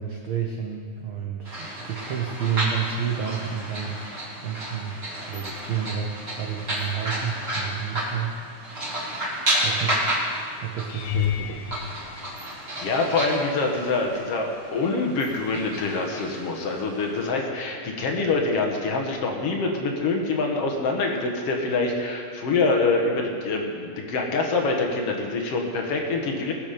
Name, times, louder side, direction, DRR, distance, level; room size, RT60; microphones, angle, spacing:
voice 1, 0.0-4.1 4.4-5.0 5.3-8.4 8.6-9.1 9.6-10.0 10.6-11.8, right 8 dB, 80° right, 1 dB, 1.1 m, -30 dB
sound 1, 1.4-17.3, right 1 dB, 25° right, 2.6 m, -32 dB
sound 2, 10.9-13.2 13.9-14.3 14.7-14.8 19.2-19.3, left 14 dB, 80° left, 2.2 m, -32 dB
voice 2, 12.8-26.5, left 3 dB, 60° left, 2 dB, 1.9 m, -25 dB
20.0 x 6.8 x 5.1 m, 2.3 s
omnidirectional pair, 3.7 m